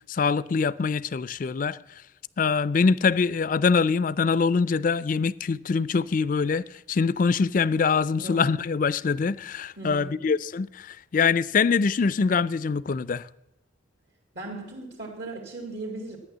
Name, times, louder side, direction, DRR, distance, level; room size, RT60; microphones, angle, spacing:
voice 1, 0.1-1.8 2.4-13.3, left 5 dB, 45° left, 0.4 m, -24 dB
voice 2, 8.1-8.5 9.8-10.2 14.3-16.2, right 2 dB, 60° right, 2.1 m, -37 dB
13.0 x 9.6 x 7.3 m
head